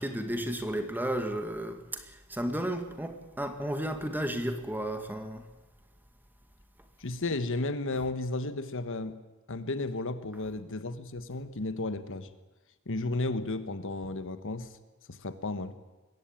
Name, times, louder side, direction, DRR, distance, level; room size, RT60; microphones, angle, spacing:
voice 1, 0.0-5.4, right 1 dB, 10° right, 2.0 m, -33 dB
voice 2, 7.0-9.2 9.5-12.3 12.9-14.7 15.1-15.7, left 2 dB, 60° left, 1.3 m, -33 dB
21.5 x 16.5 x 8.9 m
head